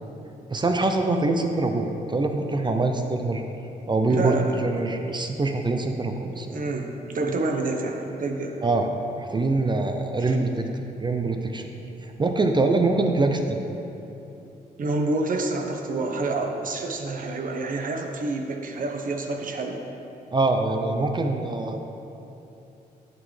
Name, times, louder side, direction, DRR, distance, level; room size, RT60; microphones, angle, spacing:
voice 1, 0.5-3.4 3.9-6.6 8.6-8.9 9.2-11.7 12.0-13.6 20.3-21.8, right 2 dB, 30° right, 4 dB, 0.6 m, -24 dB
voice 2, 4.1-4.7 6.2-8.6 10.2-10.4 14.8-19.8, right 2 dB, 55° right, 3 dB, 0.9 m, -28 dB
10.5 x 6.2 x 3.3 m, 2.9 s
cardioid pair, 80°, 16 cm